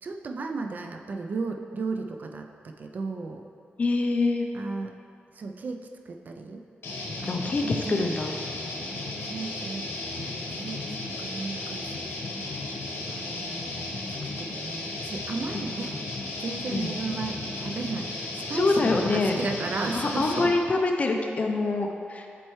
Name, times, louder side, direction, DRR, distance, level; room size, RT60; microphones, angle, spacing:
voice 1, 0.0-3.4 4.5-5.0 5.3-6.6 7.2-7.3 7.6-8.1 9.2-11.9 13.1-14.0 14.2-16.0 16.4-20.5, right 3 dB, 50° right, 4 dB, 0.4 m, -35 dB
voice 2, 3.8-4.5 7.3-8.3 16.7-16.9 18.5-19.4 19.9-22.3, left 3 dB, 35° left, 3 dB, 0.5 m, -25 dB
sound 1, 6.8-20.5, left 2 dB, 90° left, 1.0 m, -35 dB
7.6 x 4.3 x 3.1 m, 2.4 s
wide cardioid pair, 135°, 4 cm